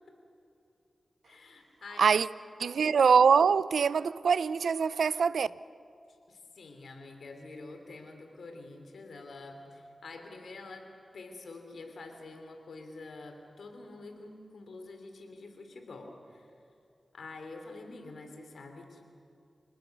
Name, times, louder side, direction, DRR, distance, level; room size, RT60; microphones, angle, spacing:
voice 1, 1.2-2.2 6.3-10.9 11.1-16.5 17.1-19.0, left 3 dB, 80° left, 3.3 m, -47 dB
voice 2, 2.0-2.3 2.6-5.5, right 6 dB, 85° right, 0.4 m, -24 dB
27.5 x 19.5 x 6.8 m
cardioid pair, 55°, 0 cm